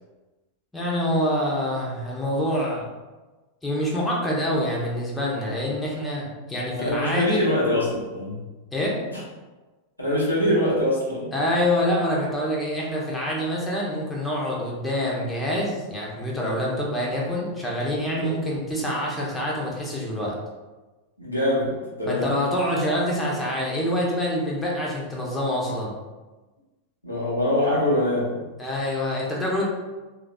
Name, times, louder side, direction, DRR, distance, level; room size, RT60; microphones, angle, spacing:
voice 1, 0.7-2.9 3.6-7.5 8.7-8.9 11.3-20.3 22.1-25.9 28.6-29.6, left 1 dB, 10° left, -4 dB, 0.7 m, -26 dB
voice 2, 6.8-8.4 9.1-9.2 10.0-11.3 18.2-18.3 21.2-22.3 27.0-28.4, left 1 dB, 85° left, -6 dB, 0.9 m, -24 dB
3.2 x 2.5 x 2.2 m, 1.2 s
figure-of-eight pair, 90°, 0 cm